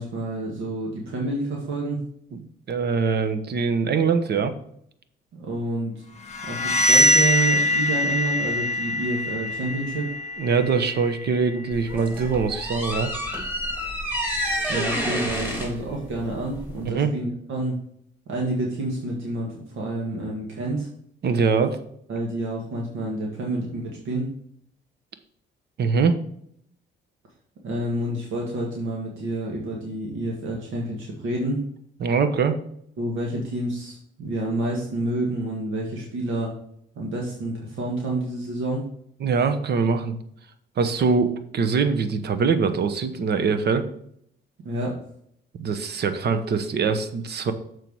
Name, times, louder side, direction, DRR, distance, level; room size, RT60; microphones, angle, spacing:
voice 1, 0.0-2.0 5.4-5.9 6.5-10.1 14.7-17.8 18.3-20.9 22.1-24.3 27.6-31.6 33.0-36.5 37.0-38.8 44.6-44.9, right 1 dB, 80° right, -1 dB, 1.8 m, -28 dB
voice 2, 2.7-4.5 10.4-13.1 16.9-17.1 21.2-21.8 25.8-26.2 32.0-32.5 39.2-40.1 40.8-43.8 45.6-47.5, right 5 dB, 55° right, 10 dB, 1.0 m, -23 dB
sound 1, 6.3-11.9, left 1 dB, 35° left, 1.0 m, -23 dB
sound 2, 11.7-16.9, equal, 10° right, 2.8 m, -29 dB
6.8 x 4.6 x 6.2 m, 0.69 s
cardioid pair, 90°, 20 cm